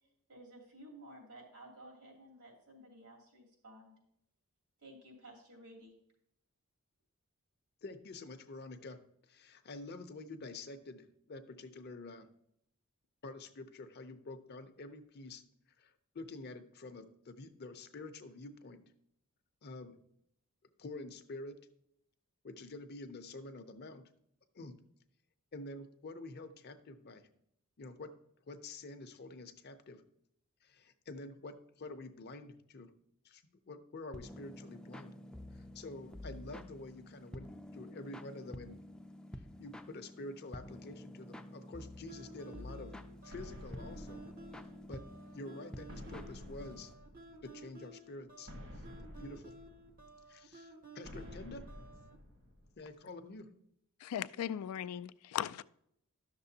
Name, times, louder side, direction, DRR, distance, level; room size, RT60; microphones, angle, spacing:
voice 1, 0.3-3.9 4.8-5.9, right 1 dB, 85° right, 2.8 m, -54 dB
voice 2, 7.8-9.0 9.3-12.3 13.2-15.4 15.8-18.8 19.6-20.0 20.8-21.6 22.4-24.1 24.5-24.8 25.5-27.3 27.8-28.1 28.5-30.0 30.6-32.9 33.2-35.2 35.5-38.8 39.6-43.0 43.2-44.2 44.9-45.0 45.3-46.9 47.4-48.5 49.2-49.5 50.3-51.7 52.8-53.5, left 2 dB, 45° left, 0.6 m, -48 dB
sound 1, 34.1-46.9, left 1 dB, 5° left, 0.4 m, -50 dB
sound 2, 42.1-52.2, right 2 dB, 40° right, 0.6 m, -55 dB
sound 3, 43.3-45.1 45.9-47.6 48.5-50.3 51.1-52.8, left 1 dB, 65° right, 1.4 m, -50 dB
voice 3, 54.0-55.6, left 10 dB, 85° left, 0.3 m, -38 dB
11.0 x 6.8 x 2.8 m
head